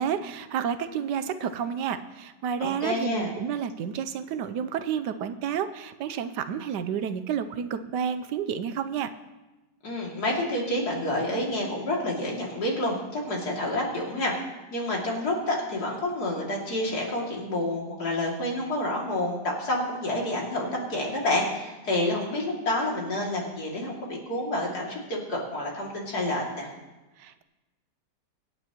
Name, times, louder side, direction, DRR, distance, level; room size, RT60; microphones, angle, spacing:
voice 1, 0.0-9.1 27.2-27.4, right 8 dB, 85° right, 11 dB, 1.3 m, -30 dB
voice 2, 2.6-3.3 9.8-14.3 14.7-26.7, left 1 dB, 65° left, -3 dB, 3.1 m, -29 dB
25.0 x 8.9 x 3.0 m, 1.1 s
omnidirectional pair, 1.8 m